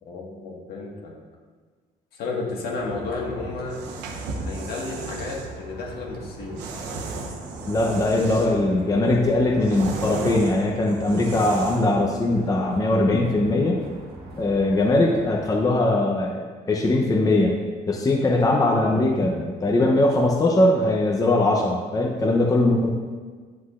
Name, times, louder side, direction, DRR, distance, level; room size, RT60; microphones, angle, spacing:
voice 1, 0.0-1.1 2.1-3.8 4.3-6.6, left 3 dB, 65° left, -2 dB, 1.6 m, -32 dB
sound 1, 2.8-15.7, right 2 dB, 65° right, 1.5 m, -42 dB
sound 2, 3.6-5.5 6.6-8.7 9.1-12.0, right 3 dB, 85° right, 1.0 m, -34 dB
voice 2, 7.7-13.8 14.4-17.6 17.9-22.9, left 2 dB, 20° left, 0 dB, 0.7 m, -21 dB
9.6 x 6.2 x 2.5 m, 1.5 s
cardioid pair, 110°, 17 cm